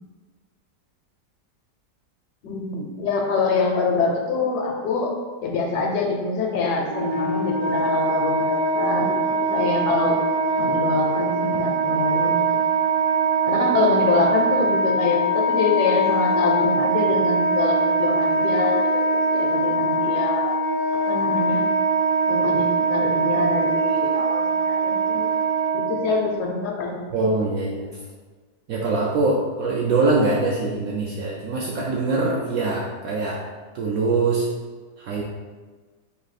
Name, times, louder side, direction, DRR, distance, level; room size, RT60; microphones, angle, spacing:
voice 1, 2.4-5.1 5.4-10.2 10.6-12.6 13.5-20.5 21.1-21.7 22.3-25.3 25.7-27.2, left 4 dB, 70° left, 1 dB, 1.1 m, -25 dB
Wind instrument woodwind instrument, 6.8-26.3, right 2 dB, 85° right, 1.3 m, -22 dB
voice 2, 27.1-27.9 28.7-33.5 33.7-34.5 35.0-35.2, right 3 dB, 70° right, -4 dB, 0.8 m, -23 dB
3.2 x 2.7 x 4.1 m, 1.4 s
omnidirectional pair, 1.9 m